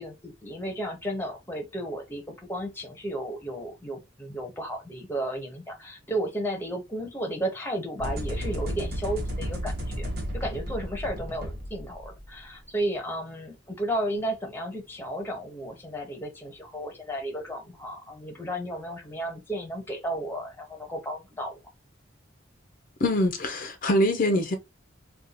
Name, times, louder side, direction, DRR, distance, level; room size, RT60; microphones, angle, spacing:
voice 1, 0.0-10.1 10.3-21.6, right 1 dB, 10° left, 0.7 m, -33 dB
sound 1, 8.0-12.3, equal, 60° right, 0.9 m, -33 dB
voice 2, 23.0-24.6, left 1 dB, 45° left, 0.5 m, -24 dB
2.6 x 2.3 x 4.0 m
head